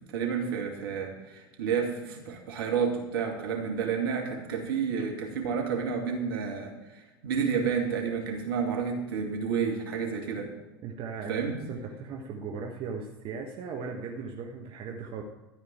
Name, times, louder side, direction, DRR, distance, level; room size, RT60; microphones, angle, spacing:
voice 1, 0.0-10.5 11.3-11.5, right 6 dB, 70° right, 1 dB, 2.4 m, -30 dB
voice 2, 10.8-15.2, right 5 dB, 45° right, 2 dB, 1.3 m, -38 dB
13.5 x 5.2 x 8.8 m, 1.1 s
hypercardioid pair, 80°, 12 cm